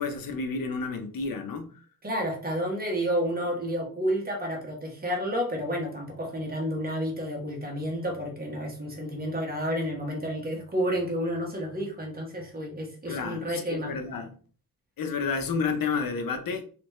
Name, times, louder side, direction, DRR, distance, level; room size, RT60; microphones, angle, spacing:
voice 1, 0.0-1.7 13.1-14.3 15.0-16.6, left 5 dB, 75° left, 0.7 m, -30 dB
voice 2, 2.0-13.9, equal, 25° right, 1.2 m, -30 dB
3.4 x 3.1 x 3.0 m
wide cardioid pair, 125°, 34 cm